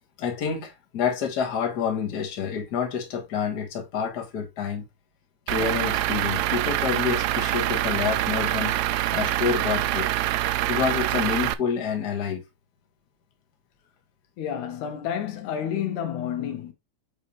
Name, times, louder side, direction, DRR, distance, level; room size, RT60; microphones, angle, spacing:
voice 1, 0.2-4.8 5.5-8.7 9.1-10.1 10.7-12.4, left 7 dB, 40° left, 1.6 m, -28 dB
Truck / Idling, 5.5-11.5, right 15 dB, 85° right, 1.5 m, -25 dB
voice 2, 14.4-16.7, left 9 dB, 80° left, 2.4 m, -30 dB
7.0 x 4.7 x 3.0 m
omnidirectional pair, 3.4 m